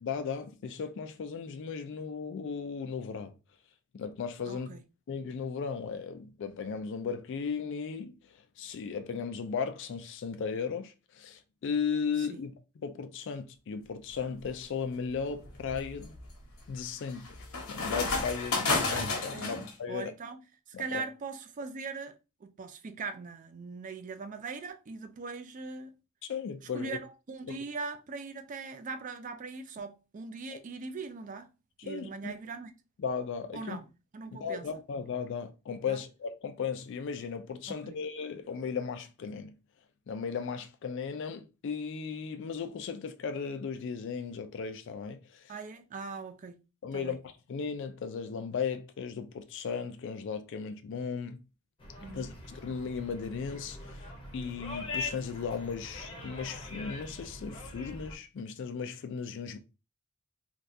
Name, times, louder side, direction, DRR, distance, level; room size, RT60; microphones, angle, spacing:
voice 1, 0.0-3.3 3.9-4.7 5.1-12.5 12.8-16.1 16.7-17.4 17.7-20.1 20.7-21.0 26.2-27.0 27.5-27.6 31.8-32.3 33.0-33.8 34.4-39.6 40.1-45.5 46.8-47.2 47.5-51.4 52.1-59.6, left 6 dB, 55° left, 0.3 m, -36 dB
voice 2, 4.5-4.8 12.2-12.4 19.3-19.6 19.9-25.9 26.6-31.5 31.8-32.7 33.5-33.9 34.1-34.7 35.8-36.0 37.7-38.0 45.5-46.6 46.9-47.2 52.0-52.3, right 4 dB, 35° right, 0.4 m, -41 dB
sound 1, 14.2-14.5 15.1-19.7, left 3 dB, 80° left, 1.0 m, -32 dB
sound 2, 51.8-58.1, left 3 dB, 25° left, 0.7 m, -42 dB
3.4 x 2.3 x 2.6 m
head